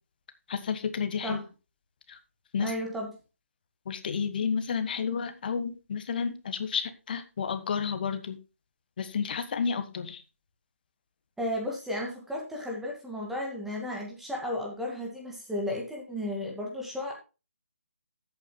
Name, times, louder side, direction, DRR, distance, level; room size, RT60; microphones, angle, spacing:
voice 1, 0.5-1.4 2.1-2.2 2.5-2.7 3.8-8.4 9.0-10.2, left 6 dB, 40° left, 10 dB, 1.6 m, -31 dB
voice 2, 2.6-3.1 11.4-17.1, left 1 dB, 5° right, -1 dB, 2.1 m, -34 dB
15.5 x 8.8 x 2.2 m, 0.30 s
figure-of-eight pair, 145°, 8 cm